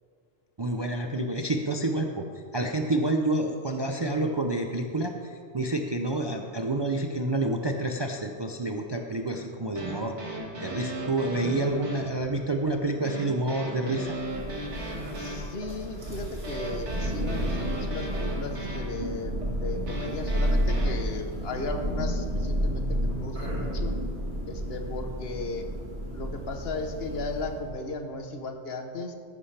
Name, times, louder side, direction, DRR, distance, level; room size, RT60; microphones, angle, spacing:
voice 1, 0.6-2.3 2.5-10.2 10.6-14.2, right 2 dB, 35° right, 3 dB, 0.4 m, -28 dB
sound 1, 9.3-20.9, right 1 dB, 80° right, 2.0 m, -37 dB
Thunder, 14.1-27.8, equal, 60° right, 2.6 m, -31 dB
voice 2, 15.2-23.9 24.4-25.7 26.1-29.1, left 2 dB, 60° left, 5 dB, 1.2 m, -36 dB
14.0 x 11.5 x 3.3 m, 2.3 s
omnidirectional pair, 1.2 m